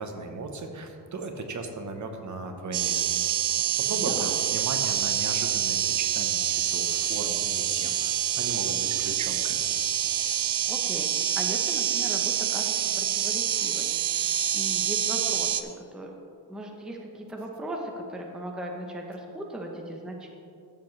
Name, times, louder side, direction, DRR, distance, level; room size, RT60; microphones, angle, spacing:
voice 1, 0.0-9.8, right 3 dB, 45° right, 4 dB, 0.9 m, -37 dB
sound 1, 2.7-15.6, right 10 dB, 70° right, 0.7 m, -26 dB
voice 2, 3.9-4.3 10.7-16.1 16.5-20.3, right 1 dB, ahead, 1 dB, 0.7 m, -38 dB
14.0 x 7.3 x 3.2 m, 2.5 s
wide cardioid pair, 160°, 42 cm